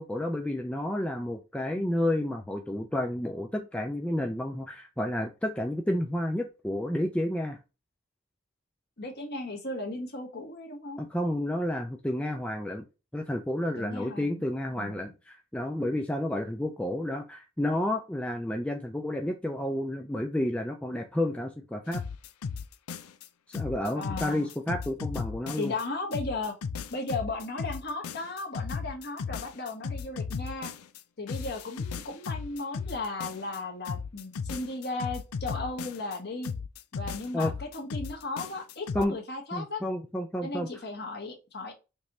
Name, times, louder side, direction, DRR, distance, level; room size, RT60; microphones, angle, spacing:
voice 1, 0.0-7.6 11.0-12.9 13.1-22.0 23.5-25.7 37.3-37.5 38.9-39.1 39.5-40.8, left 1 dB, 5° left, 0.4 m, -31 dB
voice 2, 9.0-11.1 13.8-14.4 14.8-15.1 23.9-24.5 25.5-26.5 26.9-30.7 31.2-36.5 36.9-39.8 40.4-41.7, left 2 dB, 45° left, 1.4 m, -36 dB
sound 1, 21.9-23.3 23.5-25.8 26.1-31.0 31.3-33.6 33.9-36.2 36.4-39.1, left 5 dB, 85° left, 0.5 m, -36 dB
5.2 x 3.0 x 2.6 m
head